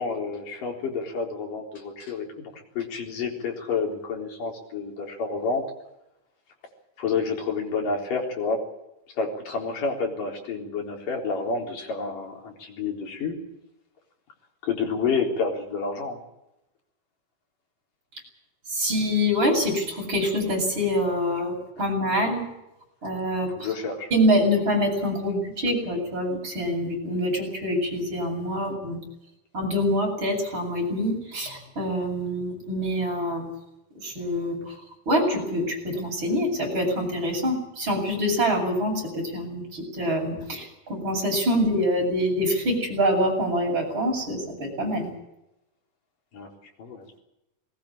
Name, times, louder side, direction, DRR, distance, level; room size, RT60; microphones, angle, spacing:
voice 1, 0.0-2.3 2.8-5.6 7.0-8.6 9.1-13.4 14.6-16.2 23.6-24.1 46.3-46.5 46.8-47.2, left 4 dB, 75° left, 2 dB, 5.6 m, -29 dB
voice 2, 18.7-22.4 23.0-23.7 24.1-29.0 29.5-33.4 34.0-34.7 35.1-45.1, equal, 35° right, 0 dB, 8.6 m, -25 dB
20.5 x 20.0 x 8.8 m, 0.90 s
omnidirectional pair, 3.9 m